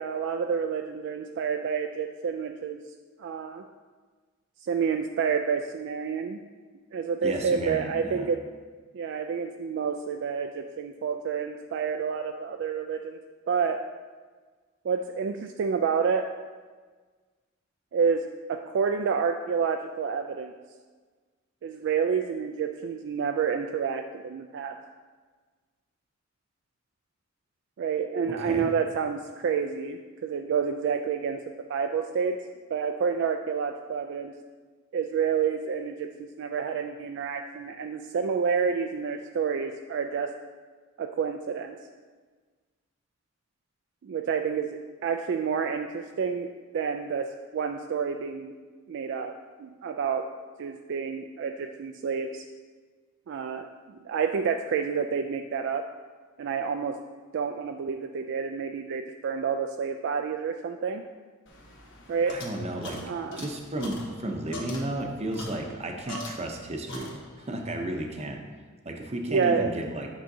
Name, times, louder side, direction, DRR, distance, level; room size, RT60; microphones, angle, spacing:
voice 1, 0.0-2.8 3.2-3.6 4.6-6.4 6.9-8.4 8.9-13.2 13.5-13.8 14.8-16.3 17.9-20.5 21.6-24.8 27.8-32.4 32.7-34.3 34.9-40.3 41.0-41.8 44.0-48.5 48.9-49.3 49.6-50.3 50.6-52.4 53.3-55.9 56.4-57.0 57.3-61.0 62.1-62.4 63.0-63.4 69.3-69.8, right 6 dB, 60° right, 5 dB, 0.3 m, -29 dB
voice 2, 7.2-8.3 28.4-28.7 62.3-63.0 63.4-67.1 67.4-68.4 68.8-70.1, right 1 dB, 30° right, 3 dB, 0.7 m, -33 dB
sound 1, 61.5-66.6 66.9-67.6, left 1 dB, 65° left, 1.2 m, -42 dB
8.9 x 5.6 x 2.7 m, 1.4 s
head